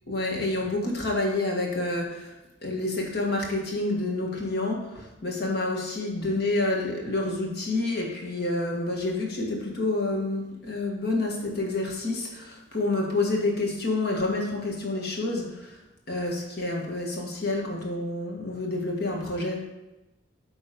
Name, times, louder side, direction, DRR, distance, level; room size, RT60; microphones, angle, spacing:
voice 1, 0.1-2.3 2.6-15.8 16.1-19.6, left 2 dB, 55° left, 0 dB, 1.6 m, -28 dB
8.7 x 3.5 x 5.1 m, 1.0 s
head